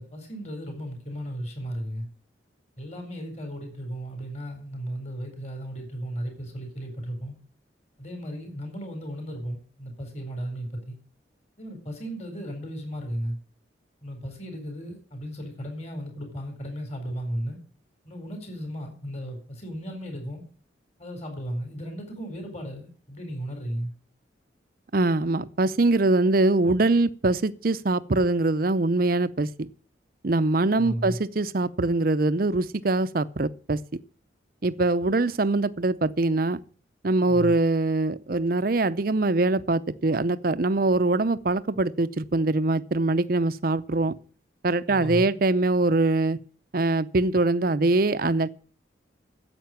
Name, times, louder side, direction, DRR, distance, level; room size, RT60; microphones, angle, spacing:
voice 1, 0.0-2.1 2.8-7.3 8.0-10.9 11.6-13.3 14.0-17.6 18.0-20.4 21.0-23.9 30.8-31.2 37.3-37.5 44.9-45.4, equal, 35° left, 4.3 m, -35 dB
voice 2, 24.9-29.7 30.2-33.8 34.6-36.6 37.0-44.1 44.6-46.4 46.7-48.5, right 2 dB, 50° right, 0.6 m, -23 dB
10.5 x 8.1 x 8.9 m
head